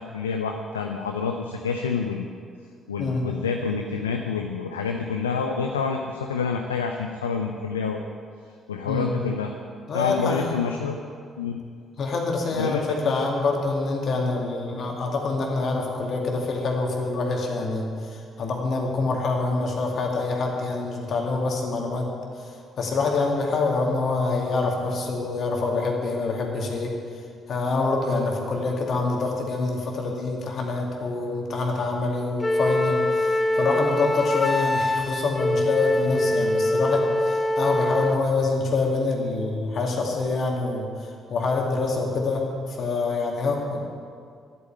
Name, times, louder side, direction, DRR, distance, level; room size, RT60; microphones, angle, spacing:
voice 1, 0.0-2.3 2.9-8.0 8.7-9.5 9.9-11.0 11.4-11.6 12.5-13.3, left 5 dB, 80° left, 3 dB, 0.5 m, -28 dB
voice 2, 8.9-9.4 9.9-10.6 12.0-22.1 22.8-26.9 27.5-40.9 41.3-43.8, left 3 dB, 50° left, 1 dB, 2.3 m, -26 dB
Wind instrument woodwind instrument, 32.4-38.2, left 1 dB, 20° left, 0.9 m, -24 dB
11.5 x 8.6 x 8.7 m, 2.3 s
figure-of-eight pair, 45°, 0 cm